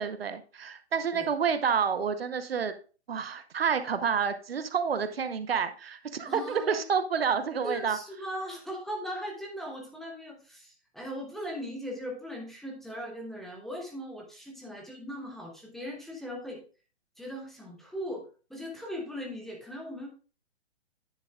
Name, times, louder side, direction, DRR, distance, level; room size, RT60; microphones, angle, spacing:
voice 1, 0.0-2.7 3.1-8.0, right 6 dB, 60° right, 10 dB, 0.8 m, -29 dB
voice 2, 6.3-6.8 7.6-16.6 17.2-20.1, equal, ahead, -2 dB, 0.8 m, -39 dB
9.7 x 7.2 x 2.3 m, 0.37 s
figure-of-eight pair, 130°, 33 cm